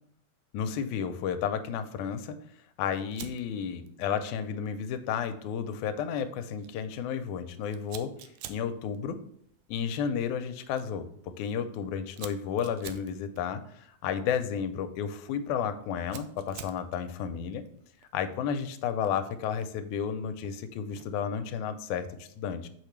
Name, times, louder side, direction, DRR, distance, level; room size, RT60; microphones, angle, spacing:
voice 1, 0.5-2.4 2.8-8.1 8.5-9.2 9.7-11.1 11.4-17.6 18.1-22.7, left 7 dB, 85° left, 10 dB, 2.0 m, -32 dB
Fire, 3.1-21.3, right 11 dB, 85° right, 1.4 m, -52 dB
6.6 x 5.2 x 3.1 m, 0.69 s
omnidirectional pair, 3.4 m